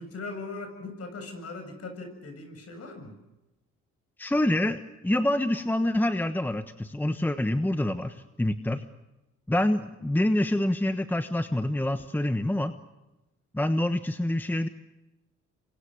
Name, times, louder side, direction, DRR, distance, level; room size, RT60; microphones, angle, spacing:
voice 1, 0.0-3.2, left 3 dB, 50° left, 6 dB, 7.6 m, -39 dB
voice 2, 4.2-8.8 9.5-12.7 13.5-14.7, left 1 dB, 5° left, 9 dB, 1.2 m, -26 dB
28.5 x 24.5 x 6.5 m, 0.98 s
cardioid pair, 90°, 30 cm